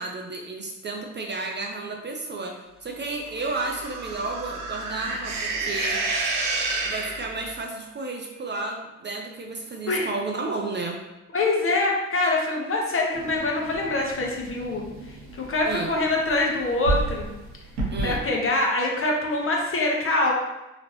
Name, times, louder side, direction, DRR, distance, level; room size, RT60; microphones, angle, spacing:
voice 1, 0.0-6.0 6.8-11.0 15.6-15.9 17.9-18.2, right 3 dB, 30° right, 1 dB, 0.6 m, -32 dB
sound 1, 3.3-7.6, right 3 dB, 65° right, 0.9 m, -29 dB
voice 2, 11.3-14.8 15.5-17.3 18.0-20.3, left 2 dB, 35° left, -1 dB, 1.1 m, -24 dB
sound 2, 13.1-18.2, right 2 dB, 90° right, 1.1 m, -33 dB
4.0 x 2.9 x 3.0 m, 1.0 s
hypercardioid pair, 55°, 36 cm